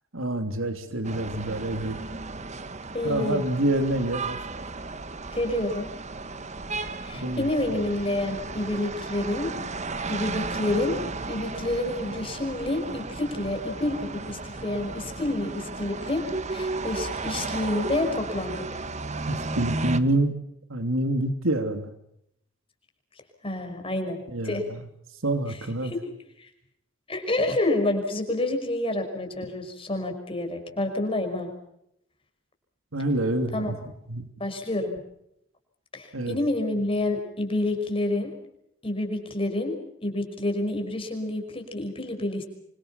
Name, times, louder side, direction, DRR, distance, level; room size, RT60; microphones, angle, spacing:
voice 1, 0.1-2.0 3.0-4.4 7.1-7.5 19.3-20.4 20.7-21.9 24.3-24.8 25.2-25.9 32.9-33.8 34.1-34.3 36.1-36.4, right 1 dB, 90° right, 7 dB, 3.1 m, -27 dB
sound 1, 1.0-20.0, right 3 dB, 35° right, 1.5 m, -34 dB
voice 2, 2.9-3.4 5.3-5.9 7.0-9.5 10.1-11.0 11.3-16.2 16.5-18.7 23.4-24.6 25.8-26.0 26.4-26.5 27.1-31.5 33.5-33.7 34.4-34.9 35.9-38.3 38.8-39.8 40.0-42.5, left 1 dB, 25° left, 5 dB, 5.7 m, -28 dB
27.5 x 25.0 x 5.8 m, 0.76 s
head